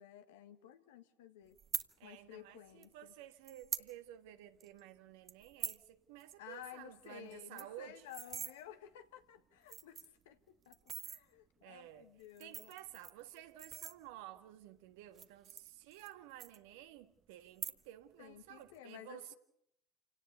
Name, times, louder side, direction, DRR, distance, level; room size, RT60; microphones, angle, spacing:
voice 1, 0.0-1.6 2.0-3.1 6.4-10.8 11.0-12.7 18.2-19.3, left 11 dB, 75° left, 1.7 m, -54 dB
sound 1, 1.6-1.9 2.8-2.9 3.4-3.9 4.3-4.4 4.6-4.8 5.3-5.8 6.2-6.3 6.6-6.7 7.0-7.1 7.4-8.5 9.2-9.3 9.6-10.2 10.7-11.2 12.2-14.4 15.0-16.1 16.4-17.0 17.5-18.1 18.3-18.8, right 8 dB, 40° right, 1.3 m, -43 dB
voice 2, 2.0-8.1 11.6-12.1 12.4-19.3, right 13 dB, 70° right, 1.6 m, -53 dB
28.0 x 18.0 x 6.9 m
hypercardioid pair, 75°, 0 cm